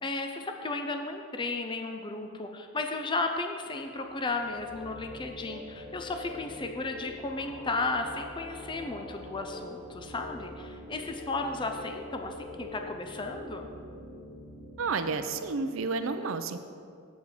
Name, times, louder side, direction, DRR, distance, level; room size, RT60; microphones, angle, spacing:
voice 1, 0.0-13.7, left 3 dB, 20° left, 5 dB, 0.4 m, -34 dB
sound 1, 3.9-15.5, left 1 dB, 50° left, 1.9 m, -44 dB
voice 2, 14.8-16.6, right 4 dB, 65° right, 9 dB, 0.5 m, -31 dB
8.0 x 7.2 x 4.9 m, 2.3 s
head